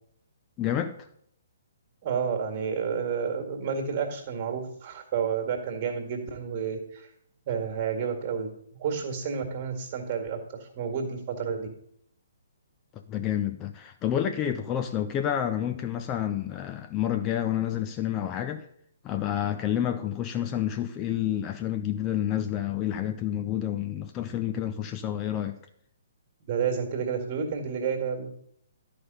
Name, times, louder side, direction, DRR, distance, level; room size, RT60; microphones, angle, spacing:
voice 1, 0.6-1.1 13.1-18.7 19.0-25.6, left 10 dB, 25° left, 0.5 m, -29 dB
voice 2, 2.0-7.1 7.5-8.5 8.8-11.7 26.5-28.3, right 6 dB, 35° right, 1.9 m, -30 dB
11.0 x 5.1 x 5.4 m
figure-of-eight pair, 130°, 0 cm